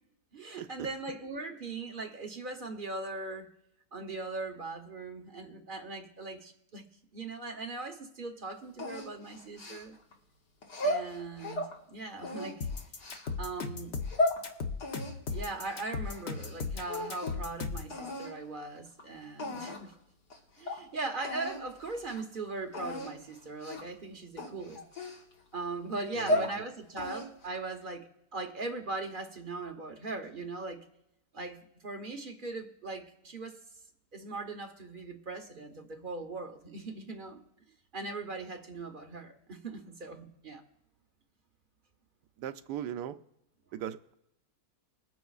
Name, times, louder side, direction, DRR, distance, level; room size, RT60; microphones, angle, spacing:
voice 1, 0.3-3.5 3.9-6.9 7.1-9.9 10.8-12.7 13.4-13.9 15.3-20.0 20.6-24.8 25.5-30.8 31.3-33.6 34.1-37.4 37.9-40.6, right 3 dB, 35° right, 0.9 m, -39 dB
sound 1, 8.8-10.1 10.6-11.7 12.2-13.3 13.9-14.4 14.8-16.6 16.8-17.5 17.9-18.3 19.0-19.1 19.4-19.9 20.3-20.4 20.7-20.8 21.2-21.6 22.0-22.2 22.7-23.1 23.6-23.9 24.4-25.6 26.0-26.6 27.0-27.5, left 1 dB, 70° left, 2.2 m, -34 dB
sound 2, 12.6-17.9, left 4 dB, 45° left, 1.0 m, -36 dB
voice 2, 26.1-26.5 42.4-43.2 43.7-44.1, right 10 dB, 80° right, 1.2 m, -38 dB
22.0 x 9.3 x 2.4 m
omnidirectional pair, 1.8 m